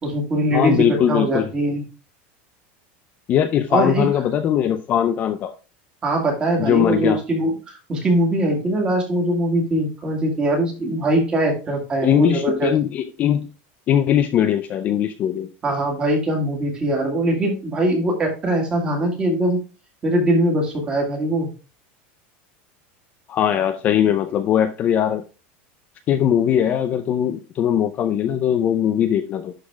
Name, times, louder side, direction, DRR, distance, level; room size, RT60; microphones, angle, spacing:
voice 1, 0.0-1.8 3.7-4.1 6.0-12.7 15.6-19.6 20.0-21.5, right 1 dB, 15° right, 0 dB, 2.0 m, -21 dB
voice 2, 0.5-1.5 3.3-5.5 6.6-7.2 12.0-13.5 13.9-15.5 23.3-25.2 26.1-29.5, left 9 dB, 25° left, 8 dB, 0.4 m, -20 dB
11.5 x 4.0 x 3.5 m, 0.34 s
supercardioid pair, 175°, 6 cm